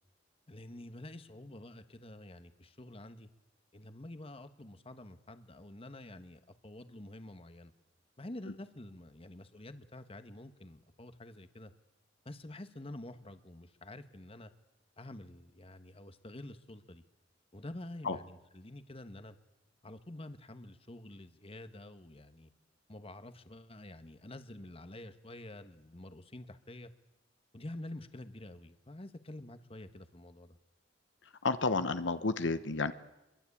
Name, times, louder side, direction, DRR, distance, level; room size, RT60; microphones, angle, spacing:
voice 1, 0.5-3.3 3.7-7.7 8.2-11.7 12.2-14.5 15.0-17.0 17.5-19.4 19.8-22.5 22.9-26.9 27.5-30.6, left 1 dB, 30° left, 10 dB, 1.3 m, -48 dB
voice 2, 31.4-32.9, left 3 dB, 75° left, 11 dB, 1.1 m, -31 dB
26.0 x 22.5 x 8.5 m, 0.98 s
head